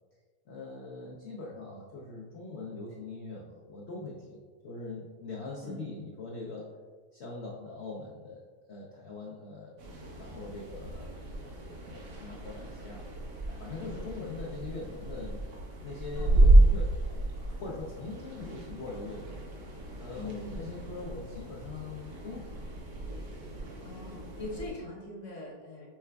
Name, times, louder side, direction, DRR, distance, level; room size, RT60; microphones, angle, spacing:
voice 1, 0.5-4.4 4.6-6.7 7.1-8.4 8.7-9.8 10.1-13.0 13.5-15.4 15.8-17.2 17.6-19.3 20.0-22.7 23.1-23.2, left 3 dB, 85° left, -3 dB, 0.5 m, -42 dB
sound 1, 9.8-24.7, right 2 dB, 80° right, 1.4 m, -30 dB
voice 2, 20.1-20.8 23.8-25.9, left 2 dB, 50° left, -3 dB, 1.1 m, -42 dB
5.8 x 3.2 x 2.2 m, 1.5 s
omnidirectional pair, 1.8 m